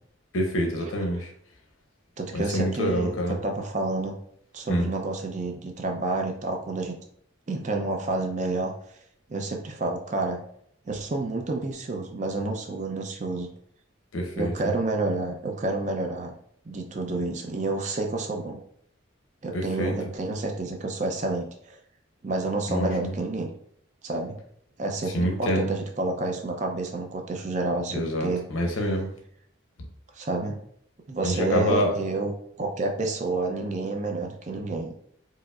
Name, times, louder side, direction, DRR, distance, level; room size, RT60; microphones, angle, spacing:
voice 1, 0.3-1.3 2.3-3.4 4.7-4.9 14.1-14.5 19.5-19.9 22.7-23.1 25.1-25.7 27.9-29.1 31.2-31.9, equal, 80° left, 2 dB, 0.7 m, -26 dB
voice 2, 2.2-4.1 4.5-6.9 7.5-8.7 9.3-10.4 10.9-13.5 14.3-16.3 16.7-18.6 19.4-21.8 22.2-23.5 24.0-24.4 24.8-28.4 28.7-28.8 30.2-30.6 31.1-34.9, right 2 dB, 35° right, 3 dB, 0.4 m, -29 dB
4.6 x 2.0 x 2.3 m, 0.66 s
head